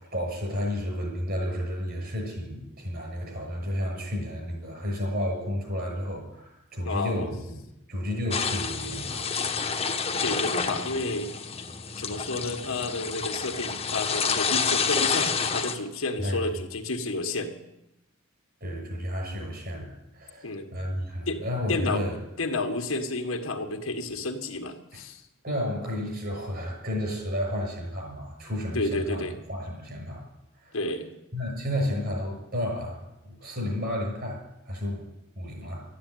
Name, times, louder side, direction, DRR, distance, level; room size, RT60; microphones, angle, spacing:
voice 1, 0.1-7.6 7.9-9.3 16.2-16.5 18.6-22.2 24.9-25.0 25.4-30.2 30.5-30.8 31.3-33.0 33.2-35.0 35.3-35.8, left 1 dB, 50° right, 1 dB, 6.8 m, -32 dB
voice 2, 6.8-7.3 10.2-11.3 12.0-17.5 20.4-20.7 21.3-21.4 21.7-22.0 22.4-25.2 28.7-29.3 30.7-31.1, left 2 dB, 80° left, 4 dB, 1.7 m, -30 dB
sound 1, 8.3-15.7, left 5 dB, 30° left, 1.2 m, -29 dB
13.0 x 10.0 x 9.3 m, 0.89 s
head